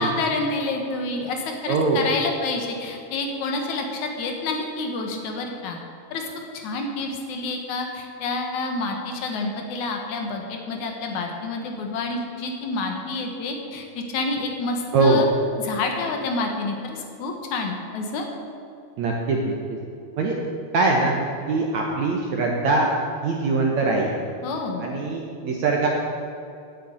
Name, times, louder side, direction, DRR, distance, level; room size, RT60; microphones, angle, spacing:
voice 1, 0.0-5.8 6.1-6.2 6.5-15.3 15.6-18.3 24.4-24.9, left 3 dB, 65° left, 3 dB, 2.1 m, -28 dB
voice 2, 1.7-2.0 14.9-15.2 19.0-19.6 20.2-20.4 20.7-21.1 21.5-22.9 23.2-24.2 24.8-25.9, right 3 dB, 80° right, 0 dB, 1.6 m, -22 dB
10.5 x 7.9 x 8.8 m, 2.6 s
omnidirectional pair, 4.9 m